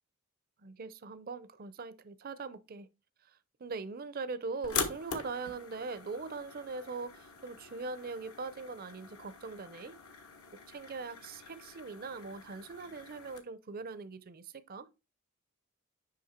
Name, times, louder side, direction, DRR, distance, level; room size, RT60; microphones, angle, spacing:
voice 1, 0.6-2.9 3.6-10.0 10.7-14.9, right 4 dB, 40° right, 0.5 m, -41 dB
sound 1, 4.6-13.4, left 6 dB, 75° left, 1.4 m, -43 dB
6.5 x 5.4 x 4.3 m
head